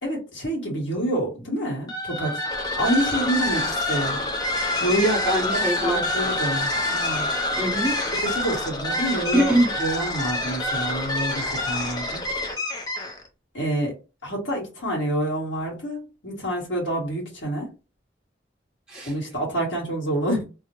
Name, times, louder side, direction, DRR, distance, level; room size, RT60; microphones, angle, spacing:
voice 1, 0.0-2.4 2.7-4.2 4.8-5.1 5.8-7.3 8.2-9.5 9.8-12.3 13.5-17.7 19.0-20.4, right 1 dB, 80° left, 1.2 m, -27 dB
sound 1, 1.8-13.3, left 1 dB, 20° left, 0.4 m, -27 dB
voice 2, 4.9-6.1 7.6-8.0 9.3-9.7 18.9-19.1, right 1 dB, 5° right, 0.8 m, -23 dB
2.5 x 2.0 x 2.8 m
head